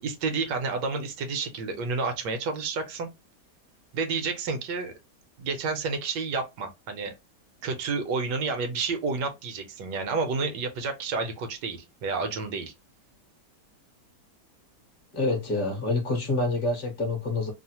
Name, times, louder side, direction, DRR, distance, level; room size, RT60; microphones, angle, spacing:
voice 1, 0.0-3.1 3.9-4.9 5.4-7.1 7.6-12.7, right 4 dB, 80° right, 1.3 m, -30 dB
voice 2, 15.1-17.5, left 2 dB, 45° left, 0.8 m, -27 dB
3.1 x 2.0 x 2.8 m
omnidirectional pair, 1.9 m